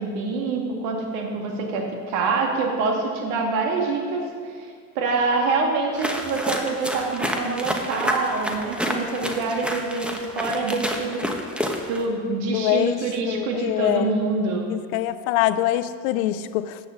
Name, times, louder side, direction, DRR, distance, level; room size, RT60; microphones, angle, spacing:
voice 1, 0.0-4.7 5.0-11.2 11.9-14.7, right 3 dB, 75° right, 1 dB, 2.1 m, -25 dB
sound 1, 5.9-12.1, equal, ahead, 1.3 m, -29 dB
voice 2, 12.5-13.0 13.3-14.2 14.7-16.8, left 14 dB, 75° left, 14 dB, 0.7 m, -24 dB
13.5 x 8.6 x 3.9 m, 2.1 s
hypercardioid pair, 75°, 43 cm